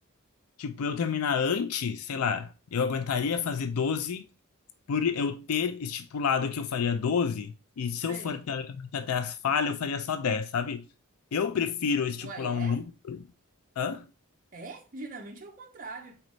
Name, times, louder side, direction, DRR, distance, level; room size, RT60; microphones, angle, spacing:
voice 1, 0.6-4.2 4.9-10.9 11.3-13.3 13.8-14.1, left 6 dB, 85° left, 0.4 m, -29 dB
voice 2, 8.1-8.5 12.2-12.8 14.5-16.2, right 3 dB, 40° right, 0.7 m, -42 dB
4.2 x 3.9 x 3.1 m
head